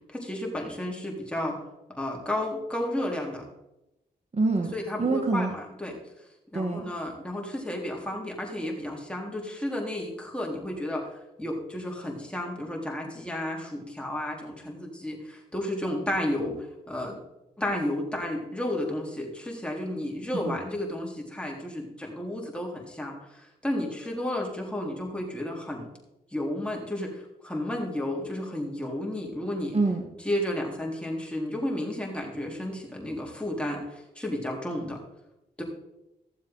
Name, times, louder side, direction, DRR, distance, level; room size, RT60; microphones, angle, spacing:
voice 1, 0.1-1.6 2.0-3.4 4.7-6.0 6.5-11.1 11.4-17.2 17.6-25.9 26.3-29.8 30.3-35.0 35.6-35.7, left 1 dB, 5° left, -1 dB, 3.7 m, -32 dB
voice 2, 4.3-4.7 5.0-5.5 6.5-6.9 20.5-20.6 29.7-30.1, right 3 dB, 35° right, 4 dB, 1.5 m, -26 dB
15.5 x 7.4 x 3.9 m, 0.91 s
supercardioid pair, 45°, 18 cm